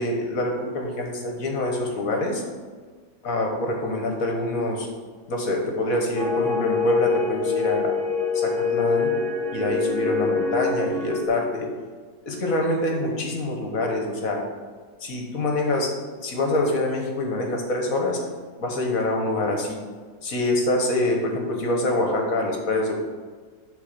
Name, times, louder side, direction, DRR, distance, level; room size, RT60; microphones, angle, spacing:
voice 1, 0.0-2.4 3.2-4.9 5.3-7.9 8.3-9.1 9.5-11.7 12.3-14.4 15.0-15.9 16.2-18.2 18.6-19.8 20.2-22.9, left 1 dB, 55° left, 1 dB, 1.5 m, -25 dB
sound 1, 6.1-11.3, left 4 dB, 25° left, 1.4 m, -24 dB
7.3 x 4.1 x 6.6 m, 1.5 s
omnidirectional pair, 1.9 m